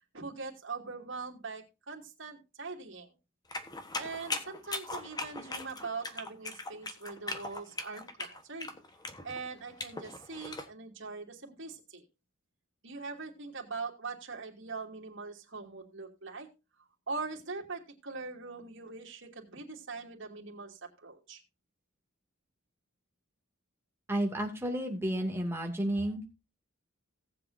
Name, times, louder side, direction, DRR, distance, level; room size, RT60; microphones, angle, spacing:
voice 1, 0.1-3.1 4.0-8.7 9.2-12.0 12.8-16.5 17.1-21.4, right 4 dB, 60° right, -1 dB, 2.9 m, -42 dB
sound 1, 3.5-10.7, left 2 dB, 20° left, 1.3 m, -39 dB
voice 2, 24.1-26.2, right 1 dB, 10° right, 2 dB, 2.5 m, -31 dB
18.0 x 7.8 x 2.7 m, 0.28 s
head